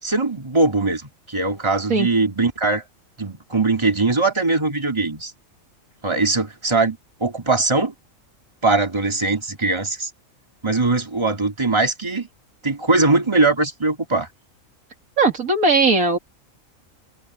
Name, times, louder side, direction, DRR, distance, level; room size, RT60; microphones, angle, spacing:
voice 1, 0.0-2.8 3.2-5.3 6.0-7.9 8.6-10.1 10.6-12.3 12.6-14.3, right 3 dB, 20° right, 2.8 m, -21 dB
voice 2, 15.2-16.2, right 3 dB, 85° right, 3.2 m, -18 dB
open air
omnidirectional pair, 1.4 m